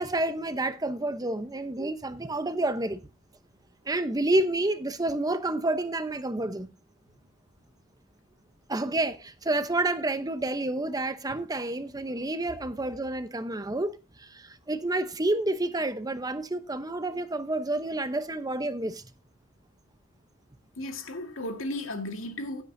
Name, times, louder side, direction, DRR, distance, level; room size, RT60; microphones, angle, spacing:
voice 1, 0.0-3.0 3.8-6.7 8.7-19.0, right 2 dB, 20° right, 0.8 m, -29 dB
voice 2, 20.8-22.6, left 1 dB, 90° left, 2.0 m, -35 dB
16.0 x 8.8 x 2.7 m
head